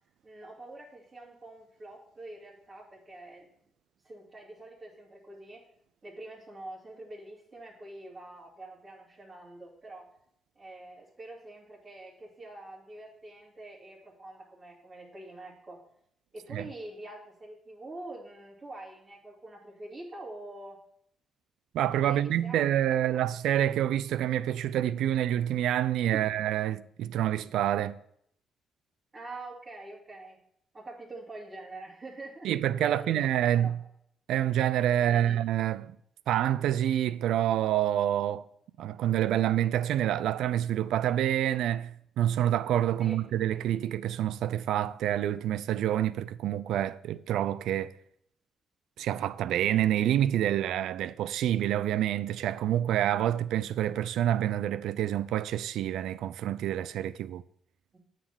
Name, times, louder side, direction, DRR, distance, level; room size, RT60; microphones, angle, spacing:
voice 1, 0.2-3.5 4.0-5.6 6.0-10.1 10.5-15.8 16.3-20.8 22.0-23.3 26.1-26.3 29.1-30.4 30.7-32.5 32.8-33.7 34.9-35.4 43.0-43.2 57.9-58.0, right 2 dB, 30° right, 2.7 m, -45 dB
voice 2, 21.7-28.0 32.4-33.8 34.3-36.0 36.3-38.4 38.8-47.9 49.0-57.4, right 11 dB, 80° right, 0.4 m, -27 dB
8.6 x 5.1 x 7.4 m
cardioid pair, 90°, 0 cm